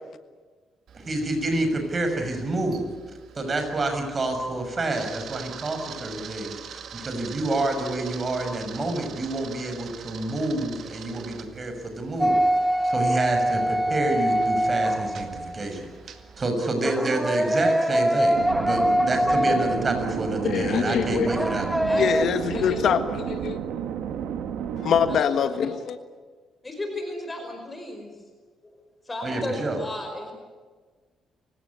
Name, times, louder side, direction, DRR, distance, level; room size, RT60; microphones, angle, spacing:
voice 1, 0.9-2.9 3.3-12.4 12.8-15.8 16.4-18.3 18.6-21.7 29.2-29.8, right 2 dB, 35° right, 5 dB, 6.3 m, -28 dB
Camera, 0.9-16.5, right 7 dB, 65° right, 2.1 m, -44 dB
sound 1, 12.2-15.6 16.8-20.3 21.3-22.3, right 1 dB, 5° right, 1.1 m, -24 dB
sound 2, 18.3-25.2, right 9 dB, 85° right, 1.7 m, -32 dB
voice 2, 20.4-21.3 21.9-23.6 24.8-26.0, left 8 dB, 65° left, 10 dB, 1.5 m, -24 dB
voice 3, 21.8-22.3 22.5-22.8 25.1-25.5 26.6-28.1 29.1-30.3, left 2 dB, 20° left, 4 dB, 5.1 m, -34 dB
28.0 x 17.0 x 9.7 m, 1.4 s
cardioid pair, 90°, 0 cm